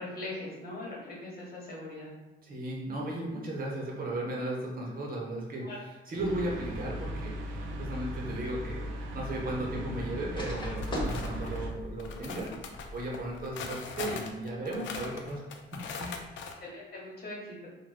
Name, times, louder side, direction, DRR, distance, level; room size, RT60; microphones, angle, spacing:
voice 1, 0.0-2.1 5.6-5.8 16.6-17.7, left 2 dB, 50° left, -4 dB, 1.2 m, -41 dB
voice 2, 2.4-5.7 6.1-12.5 12.9-15.4 15.7-16.1, right 1 dB, 45° right, -2 dB, 0.9 m, -36 dB
sound 1, 6.2-11.7, equal, 85° right, 0.4 m, -38 dB
sound 2, 6.4-13.5, left 1 dB, 25° left, 0.7 m, -42 dB
sound 3, 10.6-11.6 12.0-16.5, left 5 dB, 70° left, 0.4 m, -41 dB
3.4 x 2.2 x 2.4 m, 1.1 s
cardioid pair, 90°, 20 cm